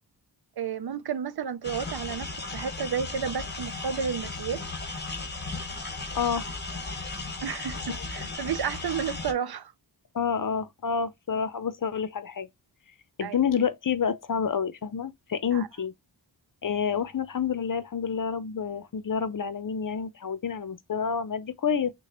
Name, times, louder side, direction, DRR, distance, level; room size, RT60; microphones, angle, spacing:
voice 1, 0.6-4.6 7.4-9.7 13.2-13.4 15.5-15.7, right 7 dB, 60° right, 0.5 m, -32 dB
sound 1, 1.6-9.3, left 3 dB, 25° left, 1.2 m, -36 dB
voice 2, 6.1-6.5 7.9-8.1 10.1-12.5 13.2-15.9 16.6-21.9, left 7 dB, 45° left, 0.6 m, -28 dB
6.2 x 2.2 x 2.9 m
wide cardioid pair, 120°, 44 cm